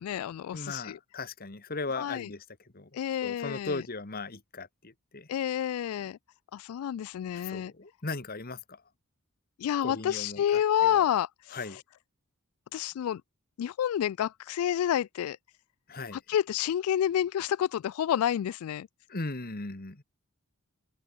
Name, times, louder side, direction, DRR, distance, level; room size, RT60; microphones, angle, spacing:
voice 1, 0.0-1.0 2.0-2.3 2.9-3.8 5.3-6.2 6.5-7.7 9.6-11.8 12.7-13.2 13.6-15.4 16.1-18.9, left 10 dB, 80° left, 0.3 m, -29 dB
voice 2, 0.5-2.4 2.7-2.9 3.2-5.3 7.4-8.6 9.8-11.0 11.5-11.8 15.9-16.2 19.1-20.0, left 3 dB, 45° left, 1.8 m, -37 dB
head